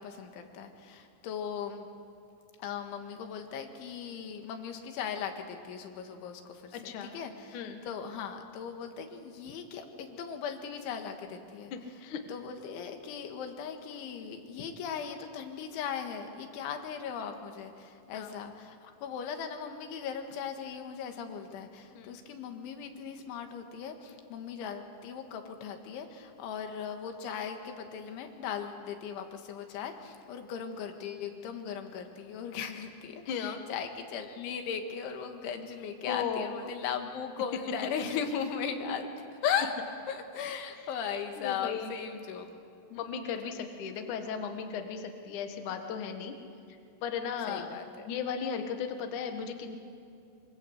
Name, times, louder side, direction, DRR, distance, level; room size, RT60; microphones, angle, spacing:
voice 1, 0.0-1.9 2.6-11.7 12.3-39.1 39.4-39.7 40.1-42.5 42.9-43.1 47.5-48.1, left 7 dB, 80° left, 5 dB, 4.2 m, -38 dB
voice 2, 6.7-7.2 7.5-7.8 11.7-12.2 18.1-18.4 21.9-22.2 33.3-33.6 36.1-36.5 41.4-41.9 42.9-46.3 47.0-47.7 48.0-49.8, left 7 dB, 55° left, 5 dB, 2.4 m, -36 dB
25.5 x 25.0 x 8.1 m, 2.6 s
omnidirectional pair, 5.4 m